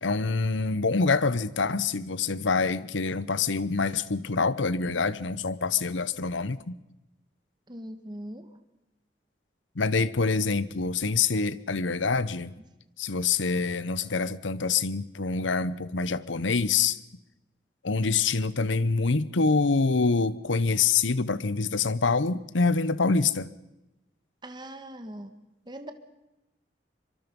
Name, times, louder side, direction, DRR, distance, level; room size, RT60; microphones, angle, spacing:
voice 1, 0.0-6.8 9.7-12.5 13.0-17.0 17.8-23.5, left 4 dB, 85° left, 0.9 m, -26 dB
voice 2, 7.7-8.4 24.4-25.3 25.7-25.9, right 1 dB, 25° right, 1.4 m, -40 dB
24.5 x 24.0 x 5.4 m
head